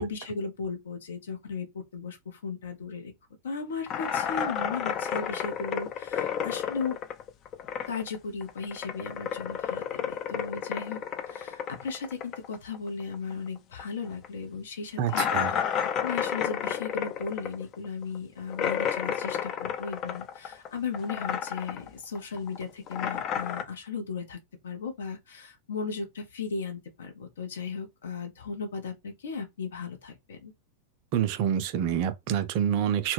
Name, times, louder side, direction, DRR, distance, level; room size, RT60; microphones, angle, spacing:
voice 1, 0.0-3.1 3.4-7.0 7.9-11.0 11.3-30.5, left 5 dB, 65° left, 0.7 m, -36 dB
sound 1, 3.9-8.2 8.4-13.5 13.7-13.8 14.2-14.3 15.1-20.7 20.9-21.9 22.1-23.6, left 8 dB, 35° left, 0.3 m, -31 dB
voice 2, 15.0-15.5 31.1-33.1, right 9 dB, 45° right, 0.4 m, -27 dB
2.2 x 2.1 x 3.2 m
figure-of-eight pair, 90°, 0 cm